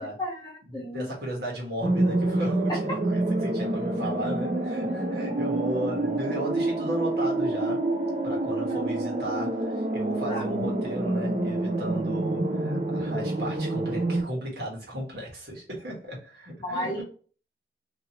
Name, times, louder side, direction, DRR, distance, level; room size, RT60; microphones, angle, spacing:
voice 1, 0.2-1.1 8.7-8.8 10.3-10.4 16.6-17.0, equal, 25° left, 1.1 m, -33 dB
voice 2, 0.7-7.9 8.2-17.0, right 1 dB, 60° right, 1.3 m, -35 dB
sound 1, 1.8-14.2, right 2 dB, 40° right, 0.4 m, -27 dB
2.8 x 2.7 x 2.8 m
head